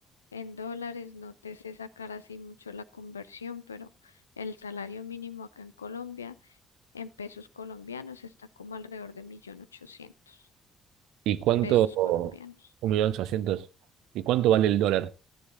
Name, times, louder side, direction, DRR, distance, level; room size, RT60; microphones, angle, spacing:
voice 1, 0.3-6.6 6.9-10.4 11.6-12.7, left 5 dB, 85° left, 0.5 m, -41 dB
voice 2, 11.3-12.3 12.8-13.7 14.1-15.1, right 12 dB, 65° right, 0.7 m, -24 dB
14.5 x 9.6 x 3.8 m
figure-of-eight pair, 45°, 0 cm